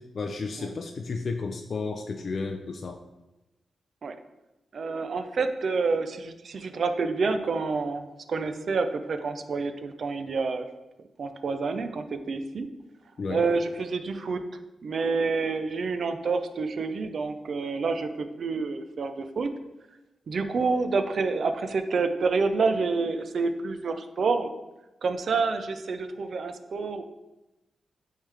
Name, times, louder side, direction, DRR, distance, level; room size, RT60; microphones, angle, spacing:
voice 1, 0.0-3.0 13.2-13.4, left 4 dB, 45° left, 4 dB, 0.3 m, -33 dB
voice 2, 4.7-10.7 11.2-12.7 13.3-14.4 14.8-19.5 20.3-24.5 25.0-27.0, right 4 dB, 55° right, 8 dB, 0.5 m, -28 dB
8.8 x 3.2 x 3.3 m, 1.0 s
wide cardioid pair, 150°, 0 cm